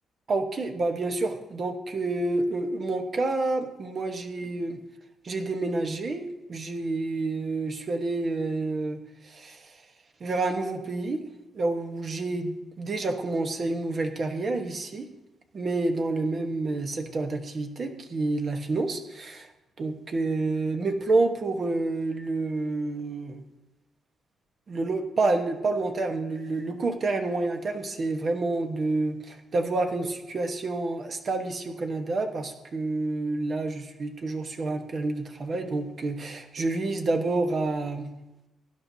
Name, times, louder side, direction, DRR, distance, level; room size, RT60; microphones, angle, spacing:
voice 1, 0.3-4.8 5.2-9.7 10.2-11.2 11.5-15.1 15.5-19.5 19.8-23.4 24.7-38.1, right 2 dB, 35° right, 5 dB, 1.2 m, -28 dB
23.0 x 11.0 x 2.8 m, 0.97 s
cardioid pair, 170°, 0 cm